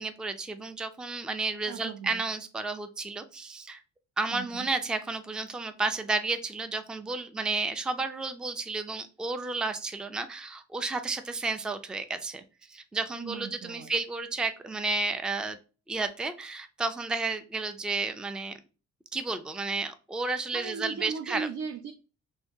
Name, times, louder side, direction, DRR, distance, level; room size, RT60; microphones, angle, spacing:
voice 1, 0.0-3.8 4.2-12.4 12.7-15.6 15.9-18.5 19.1-21.5, right 3 dB, 5° right, 0.3 m, -32 dB
voice 2, 1.7-2.2 4.3-4.7 13.1-13.9 20.5-21.9, right 6 dB, 65° right, 0.5 m, -38 dB
2.7 x 2.7 x 3.4 m
cardioid pair, 90°, 30 cm